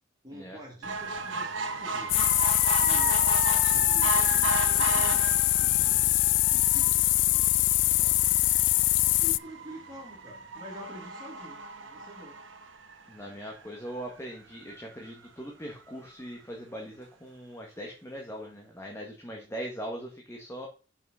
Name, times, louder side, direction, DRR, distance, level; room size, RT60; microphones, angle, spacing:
voice 1, 0.2-2.4 2.8-3.4 3.7-8.3 9.2-12.4, equal, 20° right, -4 dB, 2.4 m, -47 dB
sound 1, 0.8-13.4 14.0-14.1 14.4-14.5 14.7-14.8, right 3 dB, 75° right, 1.3 m, -34 dB
sound 2, 2.1-9.4, left 18 dB, 65° left, 0.3 m, -23 dB
voice 2, 13.1-20.7, equal, 15° left, 0 dB, 1.5 m, -40 dB
6.1 x 5.9 x 6.2 m, 0.34 s
head